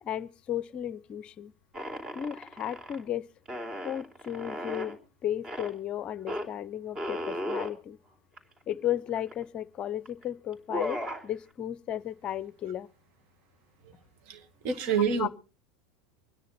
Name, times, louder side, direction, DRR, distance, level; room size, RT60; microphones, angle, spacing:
voice 1, 0.0-1.5 2.1-3.3 3.8-8.0 8.7-12.9 15.2-15.3, left 11 dB, 35° left, 0.6 m, -34 dB
sound 1, 1.7-3.0 3.5-5.0 5.4-5.7 6.3-6.5 7.0-7.7 8.4-8.5 8.7-9.4 10.1-10.2 10.5-11.3, left 1 dB, 25° right, 3.5 m, -35 dB
voice 2, 14.3-15.3, right 6 dB, 50° right, 2.1 m, -28 dB
25.0 x 10.0 x 4.2 m
figure-of-eight pair, 85°, 3 cm